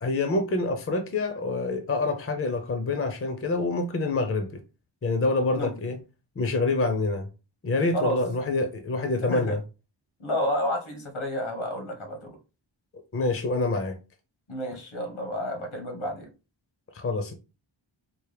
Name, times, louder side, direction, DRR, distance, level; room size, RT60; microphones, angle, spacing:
voice 1, 0.0-4.6 5.0-6.0 6.4-7.3 7.6-9.6 13.1-14.0 16.9-17.3, left 3 dB, 30° left, 0.7 m, -26 dB
voice 2, 9.2-9.6 10.2-12.4 14.5-16.3, equal, 80° left, 1.4 m, -30 dB
4.6 x 2.0 x 3.4 m
wide cardioid pair, 85°, 47 cm